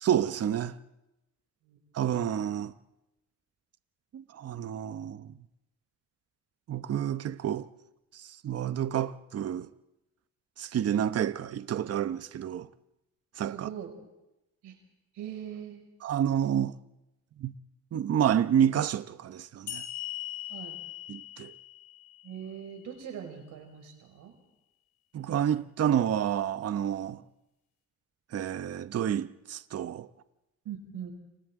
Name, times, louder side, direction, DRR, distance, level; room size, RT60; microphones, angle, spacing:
voice 1, 0.0-0.8 1.9-2.7 4.1-5.3 6.7-7.7 8.1-9.7 10.6-12.7 13.4-13.7 16.0-16.7 17.4-17.5 17.9-19.8 21.1-21.5 25.1-27.2 28.3-30.1, right 9 dB, 55° right, 1.0 m, -29 dB
voice 2, 13.4-13.9 14.6-14.8 15.1-15.8 20.5-20.8 22.2-24.3 30.6-31.1, right 9 dB, 85° right, 5.9 m, -41 dB
sound 1, 19.7-23.0, left 13 dB, 75° left, 5.3 m, -41 dB
30.0 x 25.5 x 3.8 m
cardioid pair, 90°, 30 cm